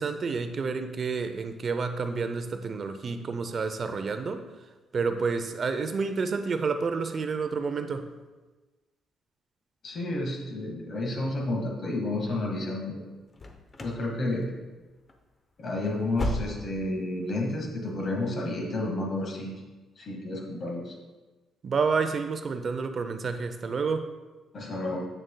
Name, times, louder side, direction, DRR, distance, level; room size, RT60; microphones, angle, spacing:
voice 1, 0.0-4.5 4.9-8.1 21.6-24.1, right 4 dB, 45° right, 9 dB, 0.5 m, -29 dB
voice 2, 9.8-13.0 13.8-14.5 15.6-19.5 20.0-20.9 24.5-25.0, left 2 dB, 50° left, 0 dB, 1.6 m, -31 dB
sound 1, 13.3-14.1 14.3-14.8 15.1-15.2 15.7-16.9 17.2-17.3 17.9-18.0, left 2 dB, 35° left, 0.8 m, -34 dB
7.6 x 6.4 x 2.2 m, 1.2 s
cardioid pair, 90°, 0 cm